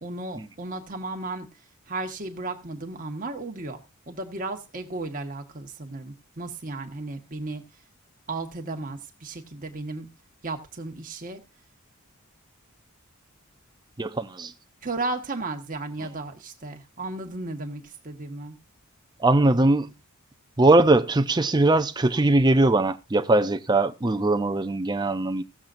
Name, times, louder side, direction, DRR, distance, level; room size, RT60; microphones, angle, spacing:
voice 1, 0.0-1.5 1.9-7.6 8.3-10.1 10.4-11.4 14.8-18.6, right 2 dB, 40° right, 1.3 m, -34 dB
voice 2, 14.0-14.5 19.2-19.9 20.6-25.4, right 2 dB, 20° right, 0.5 m, -21 dB
17.5 x 7.3 x 2.6 m
head